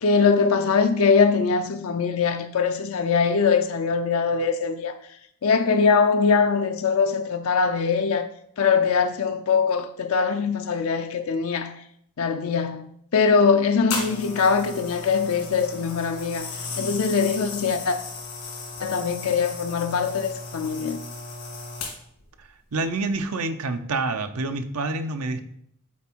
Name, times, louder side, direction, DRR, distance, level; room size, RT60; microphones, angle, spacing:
voice 1, 0.0-4.9 5.4-8.3 8.6-11.7 12.2-12.8 13.1-16.5 16.8-18.0 18.8-21.0, left 5 dB, 70° left, 0.5 m, -22 dB
sound 1, 13.9-22.2 23.0-23.2, left 4 dB, 85° left, 2.5 m, -35 dB
voice 2, 22.4-25.4, right 3 dB, 80° right, 0.6 m, -28 dB
7.2 x 4.2 x 4.5 m
head